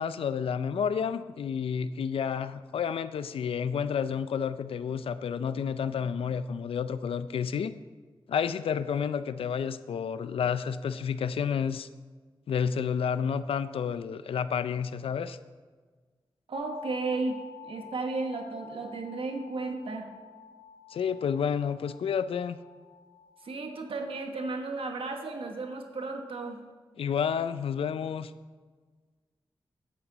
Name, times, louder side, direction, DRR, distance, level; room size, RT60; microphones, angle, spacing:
voice 1, 0.0-7.7 8.3-11.9 12.5-15.4 20.9-22.6 27.0-28.3, left 7 dB, 85° left, 13 dB, 0.4 m, -30 dB
sound 1, 16.5-26.3, left 6 dB, 50° left, 1.0 m, -50 dB
voice 2, 16.5-20.1 23.4-26.6, right 3 dB, 80° right, 4 dB, 1.3 m, -34 dB
10.5 x 8.7 x 4.0 m, 1.4 s
cardioid pair, 55°, 9 cm